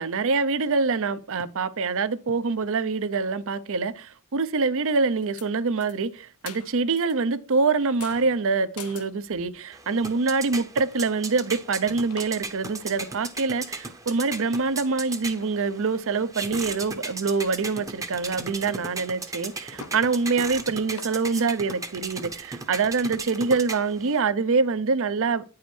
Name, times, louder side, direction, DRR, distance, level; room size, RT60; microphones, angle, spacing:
voice 1, 0.0-25.4, right 4 dB, 65° right, 0.6 m, -25 dB
sound 1, 5.2-5.5 5.8-7.2 7.5-9.6 10.1-10.2 10.4-10.7 11.1-13.6 14.1-14.2 14.4-14.8 15.3-15.7 16.1-17.0 17.3-17.4 17.9-18.3 18.6-18.7 19.0-20.1 20.5-20.6 20.9-21.2, left 7 dB, 80° left, 0.7 m, -47 dB
sound 2, 9.7-24.2, right 3 dB, 15° right, 0.7 m, -37 dB
9.3 x 4.9 x 4.4 m
head